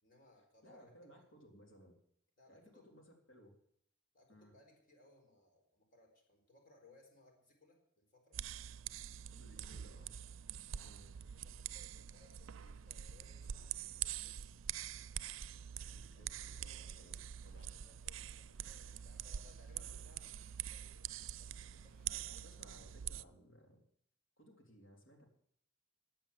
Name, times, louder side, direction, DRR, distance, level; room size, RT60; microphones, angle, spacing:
voice 1, 0.0-1.2 2.4-2.9 4.1-8.4 9.6-9.7 10.2-14.5 16.1-16.3 17.7-22.6, left 2 dB, 45° left, 2 dB, 4.3 m, -67 dB
voice 2, 0.6-2.0 2.5-3.5 4.3-4.5 9.3-10.1 10.8-11.0 15.9-17.7 19.8-20.0 22.1-23.8 24.4-25.3, equal, 80° left, 2 dB, 3.7 m, -61 dB
sound 1, 8.3-23.2, right 10 dB, 80° right, 0.5 m, -45 dB
sound 2, 16.3-22.4, equal, 5° left, 4.8 m, -76 dB
15.0 x 8.8 x 7.2 m, 0.68 s
head